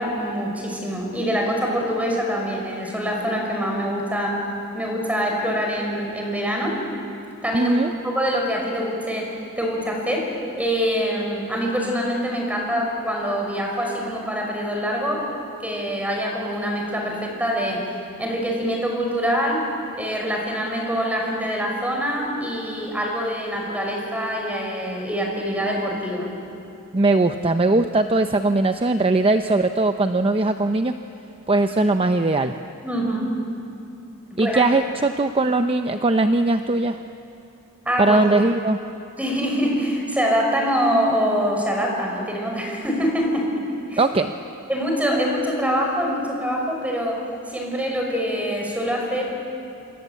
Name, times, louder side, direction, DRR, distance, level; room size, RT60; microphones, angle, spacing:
voice 1, 0.0-6.8 7.4-7.7 8.0-15.2 15.6-17.8 18.2-19.7 19.9-26.3 32.8-33.3 34.3-34.6 37.8-38.4 39.2-43.5 43.9-44.0 44.7-47.2 47.5-49.2, equal, 5° right, 0 dB, 5.9 m, -24 dB
voice 2, 7.5-7.9 26.9-30.9 31.5-32.5 34.4-37.0 38.0-38.8 44.0-44.3, right 2 dB, 25° right, 7 dB, 0.7 m, -20 dB
27.5 x 26.0 x 8.3 m, 2.7 s
head